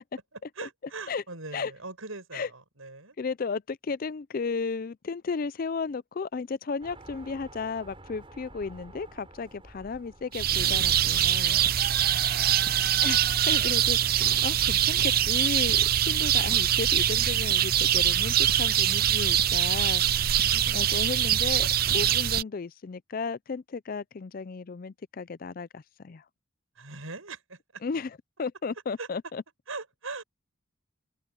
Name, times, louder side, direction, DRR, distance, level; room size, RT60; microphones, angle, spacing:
voice 1, 0.6-3.2 13.6-14.0 16.0-16.5 20.2-21.0 26.8-27.8 29.0-29.1 29.7-30.2, right 3 dB, 80° right, 6.0 m, -42 dB
voice 2, 3.2-11.6 13.0-20.0 20.7-26.2 27.8-29.4, left 4 dB, 45° left, 0.4 m, -34 dB
sound 1, 6.8-12.1, right 1 dB, 25° right, 7.1 m, -51 dB
sound 2, 10.3-22.4, right 10 dB, 45° right, 0.5 m, -23 dB
head